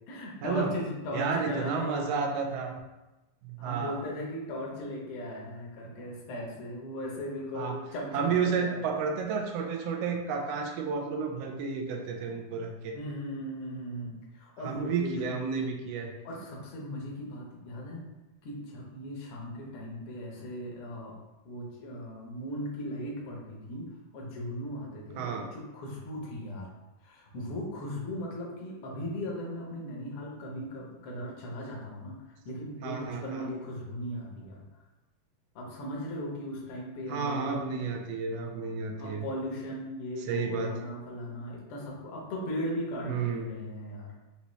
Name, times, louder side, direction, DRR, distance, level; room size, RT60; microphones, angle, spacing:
voice 1, 0.1-2.1 2.6-2.7 3.6-8.8 12.9-15.3 16.2-18.0 18.4-21.1 21.4-26.7 27.0-32.2 32.4-34.7 35.5-37.8 39.0-44.1, equal, 65° left, -2 dB, 1.6 m, -38 dB
voice 2, 1.1-2.7 3.4-4.0 7.5-7.8 8.1-13.0 14.6-16.1 25.2-25.4 32.8-33.5 37.1-39.2 40.2-40.7 43.0-43.5, right 5 dB, 75° right, 2 dB, 1.5 m, -31 dB
5.3 x 2.8 x 3.1 m, 1.0 s
omnidirectional pair, 3.3 m